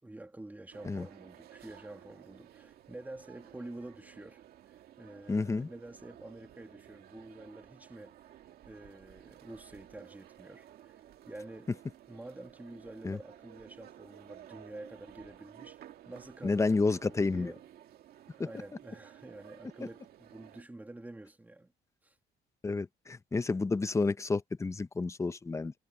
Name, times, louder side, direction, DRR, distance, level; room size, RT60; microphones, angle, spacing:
voice 1, 0.0-8.4 8.7-11.7 12.1-15.8 16.1-17.6 18.4-21.7 22.0-22.2, right 2 dB, 10° right, 2.8 m, -48 dB
sound 1, 0.7-20.6, right 12 dB, 65° right, 2.2 m, -55 dB
voice 2, 5.3-5.7 13.0-13.2 16.4-17.5 22.6-25.7, left 3 dB, 15° left, 0.8 m, -30 dB
cardioid pair, 110°, 17 cm